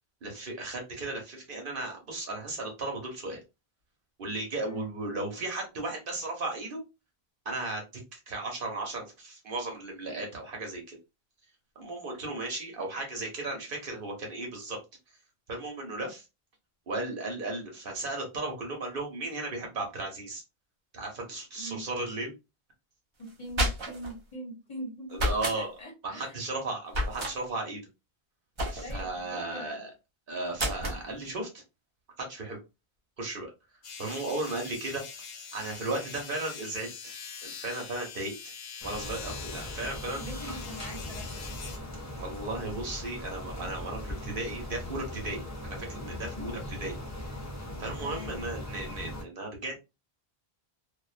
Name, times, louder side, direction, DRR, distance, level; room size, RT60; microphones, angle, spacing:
voice 1, 0.2-3.4 4.2-6.8 7.4-7.8 8.1-11.0 11.8-14.8 15.5-16.2 16.9-20.4 20.9-22.3 25.1-25.8 26.0-27.8 28.7-29.9 30.3-31.6 32.2-32.6 33.2-33.5 34.0-35.0 35.5-37.1 37.4-38.3 38.8-40.2 42.2-46.9 47.8-49.8, right 2 dB, 60° right, 1 dB, 1.0 m, -35 dB
voice 2, 23.2-25.2 25.5-26.4 28.8-29.8 40.1-41.7 46.4-46.6 48.0-48.4, equal, 40° left, 0 dB, 0.8 m, -42 dB
sound 1, 23.3-24.1 25.1-25.6 26.9-27.4 28.6-29.1 30.6-31.0, equal, 35° right, 0.6 m, -30 dB
sound 2, 33.8-41.8, left 6 dB, 80° left, 0.9 m, -43 dB
sound 3, 38.8-49.2, left 1 dB, 25° left, 0.4 m, -39 dB
2.5 x 2.2 x 2.4 m, 0.26 s
omnidirectional pair, 1.1 m